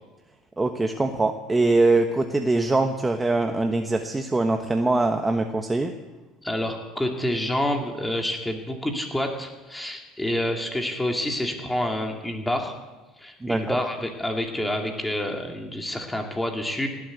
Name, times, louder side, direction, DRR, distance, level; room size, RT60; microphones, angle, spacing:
voice 1, 0.6-5.9 13.4-13.8, right 2 dB, 15° right, 5 dB, 1.2 m, -23 dB
voice 2, 6.4-12.7 13.2-16.9, left 1 dB, 10° left, 2 dB, 2.4 m, -28 dB
18.0 x 8.6 x 8.2 m, 1.2 s
hypercardioid pair, 80°, 0 cm